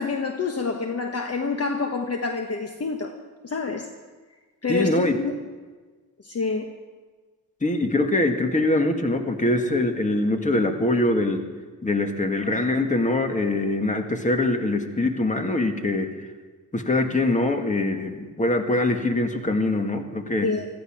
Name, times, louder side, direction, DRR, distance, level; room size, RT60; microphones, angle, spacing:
voice 1, 0.0-3.1 3.4-3.9 4.6-5.3 6.2-6.7 20.4-20.7, left 4 dB, 40° left, 5 dB, 1.3 m, -27 dB
voice 2, 4.7-5.2 7.6-11.4 11.8-16.1 16.7-20.5, left 2 dB, 20° left, 5 dB, 1.9 m, -23 dB
16.0 x 14.0 x 6.1 m, 1.4 s
cardioid pair, 85°, 37 cm